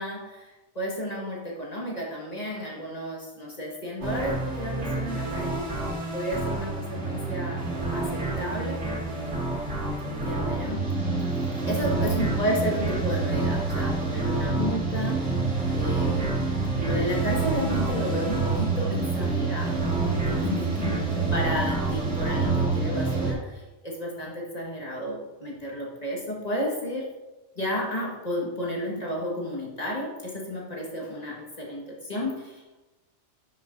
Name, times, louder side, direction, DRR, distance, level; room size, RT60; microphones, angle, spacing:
voice 1, 0.0-5.7 6.1-7.6 7.9-8.8 10.0-10.9 11.5-15.2 15.7-16.4 16.7-19.9 20.1-27.1 27.6-32.8, equal, 35° left, -3 dB, 1.8 m, -32 dB
sound 1, 4.0-23.3, right 3 dB, 80° right, 2.4 m, -27 dB
10.5 x 6.0 x 2.6 m, 1.1 s
omnidirectional pair, 1.2 m